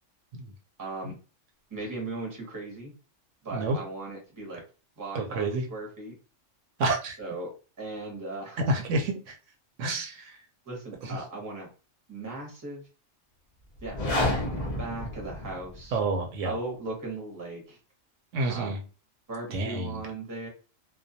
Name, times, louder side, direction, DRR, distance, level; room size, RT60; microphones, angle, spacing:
voice 1, 0.8-1.1 1.7-2.9 3.4-4.6 5.0-6.1 7.2-7.5 7.8-8.6 10.6-11.7 12.1-12.9 13.8-14.2 14.4-16.0 16.4-17.8 18.5-18.7 19.3-20.5, right 2 dB, 20° right, 0 dB, 0.7 m, -38 dB
voice 2, 5.1-5.7 6.8-7.2 8.7-9.3 9.8-10.4 11.0-11.2 15.9-16.6 18.3-18.8 19.5-20.0, right 2 dB, 75° right, 3 dB, 0.9 m, -29 dB
sound 1, 13.8-15.9, left 1 dB, 50° left, 0.4 m, -30 dB
2.2 x 2.2 x 2.6 m, 0.34 s
omnidirectional pair, 1.3 m